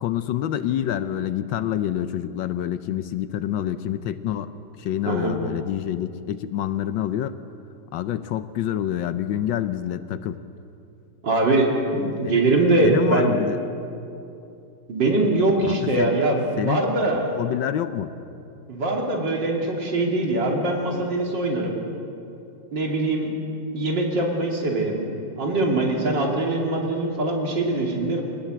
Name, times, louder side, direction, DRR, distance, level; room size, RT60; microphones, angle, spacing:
voice 1, 0.0-4.5 4.8-7.3 7.9-10.4 12.2-12.4 12.8-13.6 15.6-16.1 16.6-16.8 17.1-18.1, left 11 dB, 80° left, 11 dB, 1.4 m, -27 dB
voice 2, 5.1-5.4 11.2-13.4 14.9-17.4 18.7-21.8 22.7-23.3 23.7-28.2, right 2 dB, 70° right, 0 dB, 3.5 m, -22 dB
23.5 x 19.0 x 7.9 m, 2.7 s
omnidirectional pair, 2.0 m